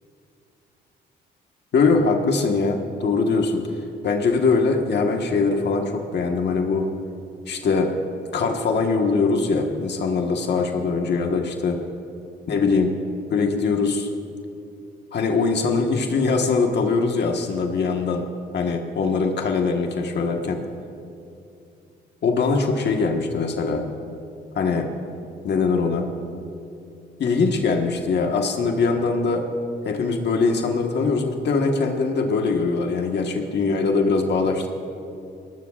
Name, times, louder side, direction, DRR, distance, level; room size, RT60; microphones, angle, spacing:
voice 1, 1.7-3.7 4.0-6.9 7.5-7.9 8.3-11.8 12.5-12.9 13.3-14.1 15.1-18.2 18.5-20.6 22.2-23.8 24.5-24.9 25.4-26.1 27.2-29.4 29.8-34.7, left 4 dB, 60° left, 3 dB, 1.4 m, -22 dB
22.0 x 19.0 x 2.5 m, 2.6 s
cardioid pair, 90°, 20 cm